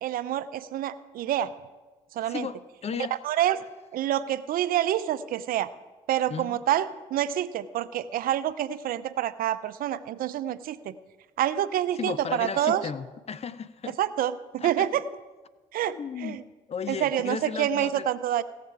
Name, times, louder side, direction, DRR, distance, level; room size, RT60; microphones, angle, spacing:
voice 1, 0.0-1.5 2.1-2.5 3.2-3.6 3.9-5.7 6.1-10.9 11.4-12.8 14.0-15.0 15.7-16.0 16.2-16.4 16.9-18.4, right 11 dB, 65° right, 14 dB, 0.6 m, -27 dB
voice 2, 2.3-3.1 6.3-6.6 11.9-14.0 14.6-14.9 15.9-16.4 16.7-18.1, left 6 dB, 40° left, 15 dB, 0.7 m, -35 dB
17.0 x 6.8 x 4.8 m, 1.2 s
hypercardioid pair, 55°, 16 cm